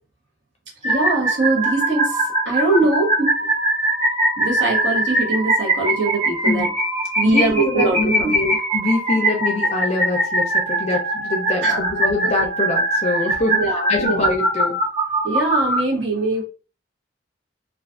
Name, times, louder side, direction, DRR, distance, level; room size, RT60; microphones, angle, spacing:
sound 1, 0.8-15.8, right 1 dB, 45° right, 1.3 m, -22 dB
voice 1, 0.8-3.5 4.4-6.7 7.2-8.6 11.6-11.9 13.5-14.2 15.2-16.4, right 2 dB, 70° right, -2 dB, 0.9 m, -22 dB
voice 2, 7.3-8.5 8.7-13.6 13.9-14.7, left 2 dB, 35° left, 1 dB, 0.4 m, -24 dB
2.3 x 2.3 x 2.3 m, 0.34 s
head